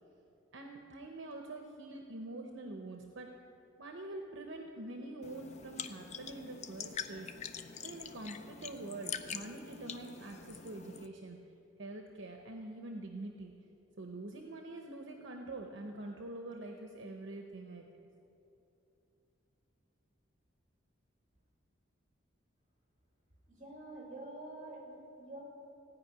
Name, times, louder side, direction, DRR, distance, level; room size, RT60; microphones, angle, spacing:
voice 1, 0.5-3.3 3.8-7.3 7.8-11.4 11.8-13.5 14.0-17.8, right 2 dB, 70° right, 3 dB, 0.8 m, -45 dB
sound 1, 5.2-11.1, left 7 dB, 35° left, 0.5 m, -45 dB
voice 2, 23.5-25.4, right 2 dB, 35° right, -2 dB, 2.5 m, -47 dB
16.0 x 5.4 x 9.3 m, 2.8 s
head